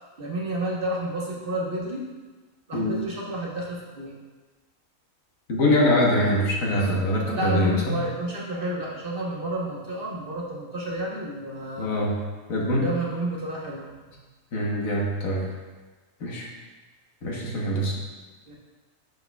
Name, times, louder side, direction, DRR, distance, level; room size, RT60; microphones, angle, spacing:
voice 1, 0.2-2.0 2.7-4.1 7.4-11.9 12.7-14.1 18.5-18.6, right 1 dB, 45° right, -4 dB, 1.1 m, -30 dB
voice 2, 5.5-8.0 11.8-12.2 12.5-12.9 14.5-15.5 16.2-16.5 17.2-18.0, left 1 dB, 80° left, -2 dB, 1.6 m, -23 dB
10.0 x 4.8 x 2.2 m, 1.3 s
omnidirectional pair, 1.4 m